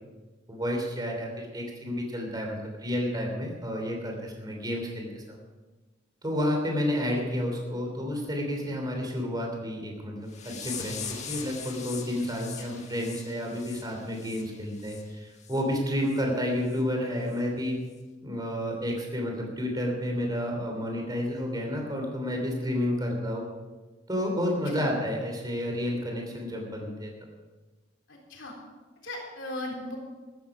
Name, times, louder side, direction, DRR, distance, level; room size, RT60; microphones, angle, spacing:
voice 1, 0.5-5.4 6.2-17.8 18.2-23.4 24.1-27.1, left 1 dB, 20° right, 1 dB, 3.3 m, -30 dB
sound 1, 10.3-15.0 15.4-15.6 16.1-16.2 16.7-16.8 17.3-17.4, left 7 dB, 35° left, 1.7 m, -41 dB
voice 2, 28.1-28.5 29.0-30.0, left 1 dB, 70° left, -1 dB, 3.6 m, -37 dB
14.5 x 13.5 x 5.0 m, 1.2 s
head